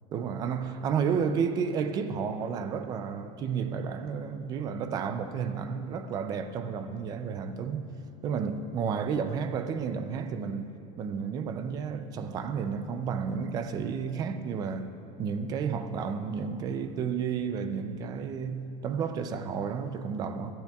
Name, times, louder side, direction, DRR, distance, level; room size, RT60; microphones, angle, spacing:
voice 1, 0.1-7.9 8.2-14.9 15.2-20.5, right 6 dB, 25° right, 0.4 m, -32 dB
17.0 x 12.0 x 2.3 m
cardioid pair, 175°, 17 cm